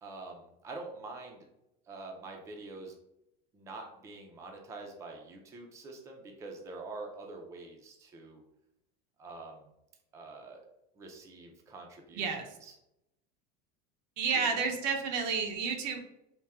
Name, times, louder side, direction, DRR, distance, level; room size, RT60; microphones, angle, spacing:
voice 1, 0.0-1.5 1.9-2.9 3.5-8.4 9.2-9.7 10.1-10.7 11.0-12.7 14.3-14.6, right 3 dB, 15° right, 1 dB, 0.4 m, -46 dB
voice 2, 12.2-12.5 14.2-16.0, right 5 dB, 85° right, 4 dB, 0.8 m, -31 dB
3.5 x 2.2 x 4.2 m, 0.84 s
cardioid pair, 170°, 21 cm